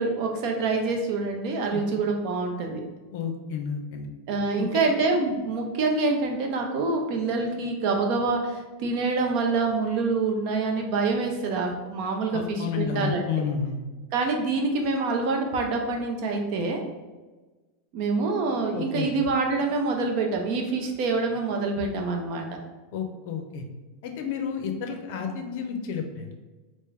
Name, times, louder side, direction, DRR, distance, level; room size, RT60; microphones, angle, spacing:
voice 1, 0.0-2.8 4.3-13.2 14.1-16.8 17.9-22.5, right 3 dB, 50° right, 2 dB, 0.6 m, -26 dB
voice 2, 3.1-4.1 4.6-4.9 12.3-13.8 18.7-19.1 22.9-23.6 24.0-26.3, left 6 dB, 60° left, 4 dB, 0.6 m, -31 dB
3.6 x 2.5 x 3.2 m, 1.2 s
supercardioid pair, 150°, 0 cm